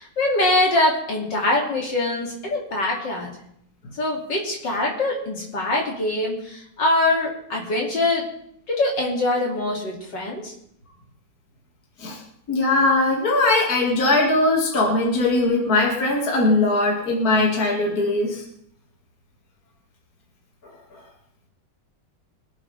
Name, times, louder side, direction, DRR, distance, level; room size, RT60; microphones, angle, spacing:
voice 1, 0.0-3.3 4.0-8.2 8.7-10.5, left 2 dB, 70° left, -2 dB, 3.4 m, -23 dB
voice 2, 12.5-18.4, left 2 dB, 50° left, -1 dB, 2.7 m, -20 dB
24.0 x 8.3 x 3.5 m, 0.71 s
omnidirectional pair, 2.0 m